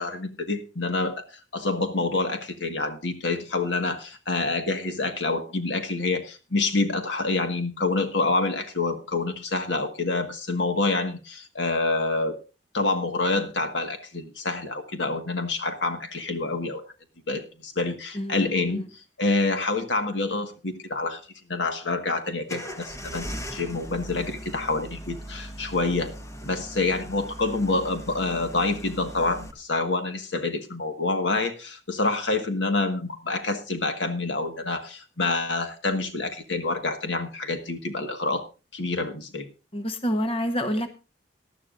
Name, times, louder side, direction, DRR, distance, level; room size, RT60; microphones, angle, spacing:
voice 1, 0.0-12.4 12.7-16.8 17.3-21.2 21.5-23.2 23.5-26.1 26.4-38.4 38.7-39.5, left 3 dB, 80° left, 7 dB, 1.7 m, -27 dB
voice 2, 18.1-18.8 39.7-40.9, equal, 30° left, 8 dB, 1.1 m, -28 dB
sound 1, 22.5-29.5, equal, 15° left, 1.2 m, -39 dB
19.0 x 12.0 x 2.6 m, 0.31 s
head